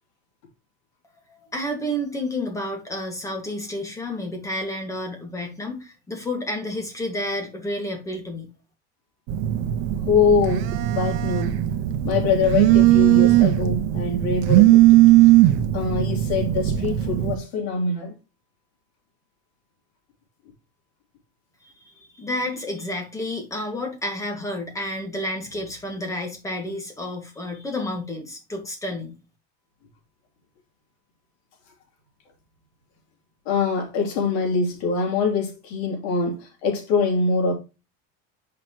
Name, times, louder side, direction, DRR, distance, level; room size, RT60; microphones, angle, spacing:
voice 1, 1.3-8.5 21.9-29.1, left 1 dB, 10° left, 1.8 m, -30 dB
Telephone, 9.3-17.3, right 15 dB, 60° right, 0.9 m, -18 dB
voice 2, 10.1-11.6 12.0-14.8 15.2-18.1 33.4-37.5, left 4 dB, 80° left, 3.2 m, -24 dB
8.0 x 5.9 x 3.0 m
cardioid pair, 160°, 32 cm